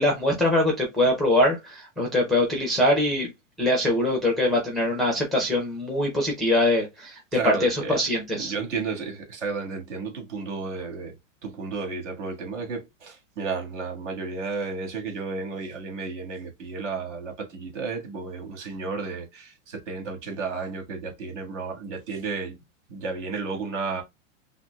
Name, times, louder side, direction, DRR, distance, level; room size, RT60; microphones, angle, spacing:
voice 1, 0.0-3.3 3.6-8.5, left 1 dB, ahead, 0.5 m, -23 dB
voice 2, 7.3-8.0 8.3-11.1 11.4-22.6 22.9-24.0, right 4 dB, 60° right, 1.7 m, -32 dB
5.7 x 2.1 x 2.2 m
hypercardioid pair, 130°, 40 cm